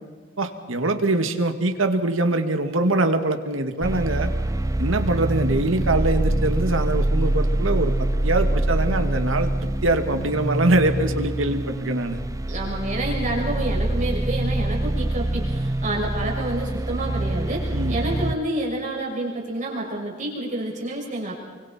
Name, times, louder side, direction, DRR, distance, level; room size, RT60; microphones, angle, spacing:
voice 1, 0.4-4.3 4.8-9.5 9.8-12.2 17.7-18.0, right 2 dB, 85° right, 6 dB, 2.1 m, -23 dB
sound 1, 3.8-18.4, right 1 dB, 15° right, 0.6 m, -25 dB
voice 2, 12.5-21.4, right 1 dB, 40° right, -2 dB, 6.5 m, -28 dB
29.0 x 24.0 x 4.5 m, 1.5 s
head